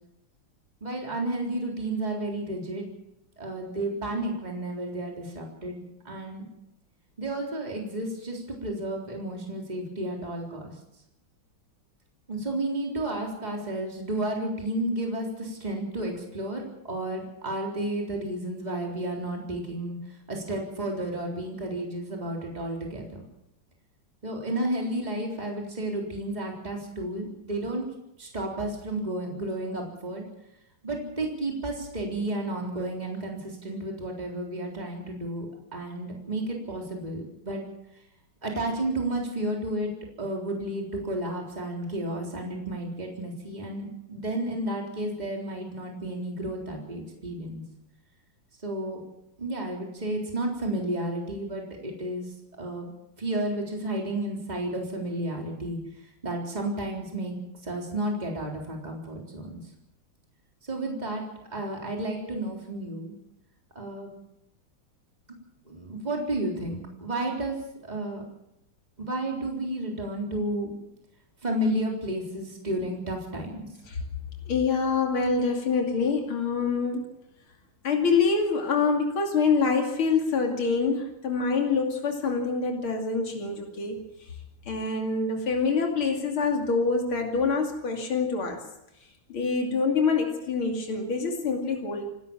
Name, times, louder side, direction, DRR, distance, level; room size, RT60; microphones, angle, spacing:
voice 1, 0.8-2.9 3.4-6.5 7.2-10.7 12.3-20.0 20.3-23.2 24.2-27.9 28.2-30.3 30.8-35.5 35.7-37.6 38.4-39.9 40.2-47.6 48.6-49.0 49.4-52.9 53.2-55.8 56.2-59.6 60.6-61.2 61.5-63.1 63.8-64.1 65.7-68.2 69.0-70.7 71.4-73.7, right 1 dB, 20° right, 0 dB, 4.0 m, -32 dB
voice 2, 74.4-77.1 77.8-84.4 84.7-88.6 89.0-92.1, left 4 dB, 85° left, 2 dB, 3.5 m, -26 dB
27.5 x 13.0 x 7.5 m, 0.84 s
omnidirectional pair, 2.2 m